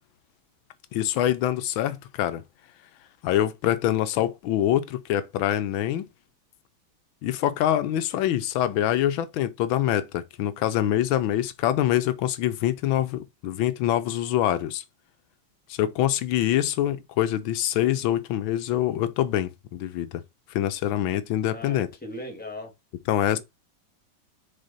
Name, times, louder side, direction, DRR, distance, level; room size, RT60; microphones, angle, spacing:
voice 1, 0.9-2.4 3.2-6.1 7.2-14.8 15.7-20.2 20.5-21.9 23.1-23.4, left 12 dB, 90° left, 1.5 m, -25 dB
voice 2, 21.5-22.7 23.3-23.4, left 1 dB, 5° left, 1.9 m, -38 dB
6.6 x 4.5 x 4.1 m
omnidirectional pair, 2.1 m